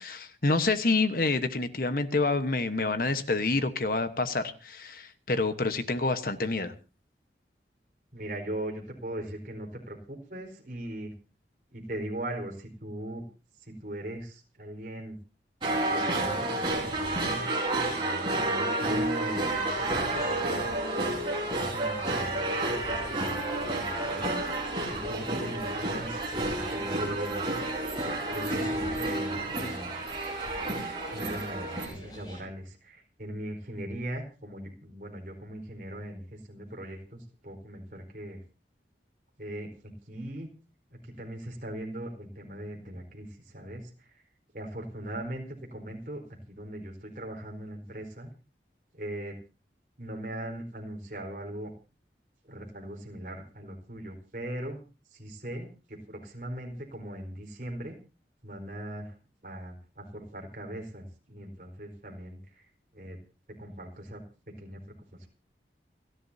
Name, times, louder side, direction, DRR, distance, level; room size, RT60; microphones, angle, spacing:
voice 1, 0.0-6.7, left 3 dB, 55° left, 9 dB, 1.2 m, -28 dB
voice 2, 8.1-11.1 11.7-13.2 13.6-15.2 15.9-17.5 17.8-21.0 21.5-24.6 24.9-27.4 28.3-30.0 31.1-38.4 39.4-39.7 40.1-40.5 40.9-44.2 44.5-48.3 48.9-49.4 50.0-51.7 52.4-54.8 55.1-58.0 58.4-59.1 59.4-62.6 62.9-63.2 63.6-64.2 64.6-64.8 65.2-65.3, right 1 dB, 50° right, 2 dB, 4.3 m, -39 dB
sound 1, 15.6-31.9, right 2 dB, 30° right, 5.2 m, -30 dB
sound 2, 19.7-32.4, equal, 25° left, 6.9 m, -48 dB
29.5 x 11.5 x 2.8 m, 0.33 s
head